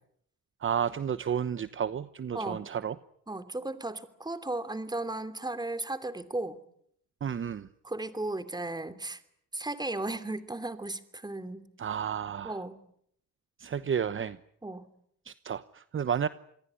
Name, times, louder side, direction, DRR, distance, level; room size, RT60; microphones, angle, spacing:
voice 1, 0.6-3.0 7.2-7.7 11.8-12.6 13.6-14.4 15.2-16.3, right 8 dB, 40° right, 14 dB, 1.0 m, -31 dB
voice 2, 2.3-2.7 3.3-6.6 7.8-9.2 9.5-11.7 12.4-12.8 14.6-14.9, right 2 dB, 15° right, 11 dB, 3.0 m, -35 dB
27.5 x 22.0 x 9.8 m, 0.70 s
cardioid pair, 90°, 30 cm